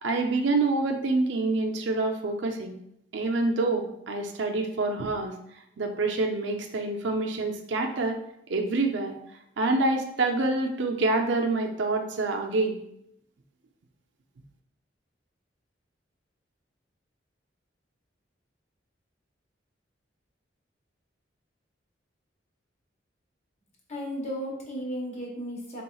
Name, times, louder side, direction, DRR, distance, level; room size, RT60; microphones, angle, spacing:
voice 1, 0.0-2.8 3.1-5.4 5.8-8.2 8.5-9.1 9.6-12.8, right 2 dB, 75° right, 4 dB, 0.5 m, -26 dB
voice 2, 23.9-25.8, equal, 35° left, -3 dB, 1.0 m, -34 dB
4.2 x 3.5 x 2.3 m, 0.77 s
head